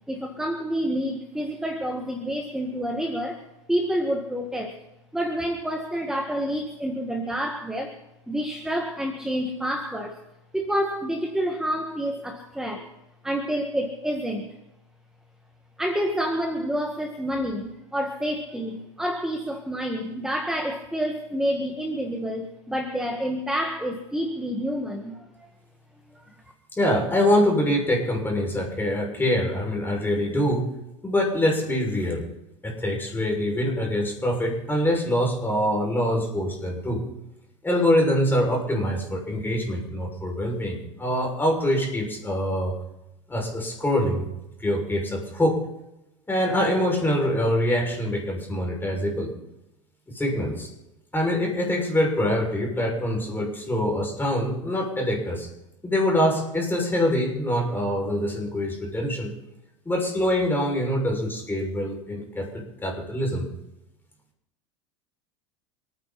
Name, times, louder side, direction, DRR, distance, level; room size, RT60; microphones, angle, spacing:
voice 1, 0.1-3.4 3.7-4.7 5.1-7.9 8.3-10.2 10.5-12.9 13.2-14.5 15.8-25.5 26.1-26.3, equal, 5° right, 4 dB, 1.9 m, -28 dB
voice 2, 26.7-30.7 31.0-32.2 32.6-37.0 37.6-42.7 43.3-44.2 44.6-45.6 46.3-49.3 50.1-50.7 51.1-55.5 55.8-59.3 59.8-63.4, left 1 dB, 15° left, 0 dB, 6.4 m, -24 dB
28.0 x 9.9 x 4.3 m, 0.93 s
hypercardioid pair, 85°, 16 cm